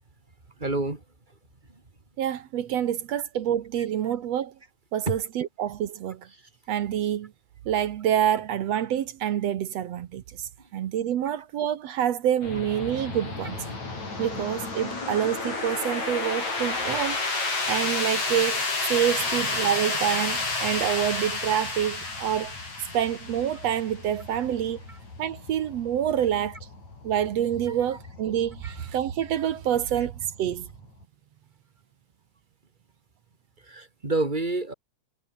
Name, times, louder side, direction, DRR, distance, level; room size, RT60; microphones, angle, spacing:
voice 1, 0.6-1.0 1.7-1.8 5.1-5.2 6.3-6.4 18.6-18.7 19.2-19.4 22.9-23.0 24.9-25.0 27.7-27.8 28.6-28.9 30.0-30.1 33.6-34.7, right 2 dB, 15° right, 3.3 m, -30 dB
voice 2, 2.2-4.5 4.9-6.2 6.7-7.3 7.7-13.6 14.2-17.2 17.7-18.6 18.9-22.5 22.9-24.8 25.2-26.6 27.0-30.1 30.4-30.7, right 10 dB, 65° right, 2.1 m, -27 dB
sound 1, 12.4-31.0, left 3 dB, 60° left, 9.4 m, -32 dB
omnidirectional pair, 3.6 m